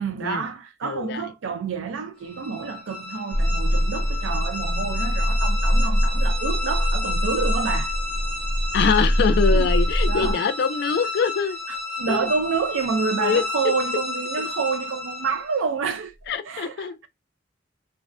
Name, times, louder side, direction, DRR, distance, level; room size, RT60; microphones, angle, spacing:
voice 1, 0.0-7.9 9.5-9.7 10.0-10.4 11.7-17.1, right 5 dB, 90° right, 0.4 m, -28 dB
voice 2, 0.8-1.2 8.7-11.6 12.1-12.3 13.2-13.4 16.3-17.0, left 6 dB, 60° left, 0.3 m, -23 dB
sound 1, 2.2-15.6, left 3 dB, 5° left, 0.6 m, -32 dB
sound 2, 3.3-10.3, equal, 45° right, 0.9 m, -23 dB
2.4 x 2.1 x 2.4 m
head